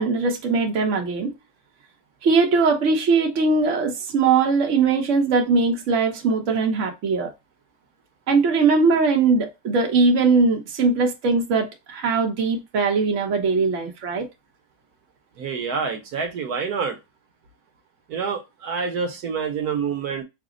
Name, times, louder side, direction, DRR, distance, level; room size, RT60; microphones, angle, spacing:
voice 1, 0.0-1.3 2.2-7.3 8.3-14.3, right 4 dB, 55° right, 1.2 m, -20 dB
voice 2, 15.4-17.0 18.1-20.2, right 5 dB, 75° right, 1.3 m, -27 dB
5.9 x 2.1 x 3.7 m
omnidirectional pair, 1.6 m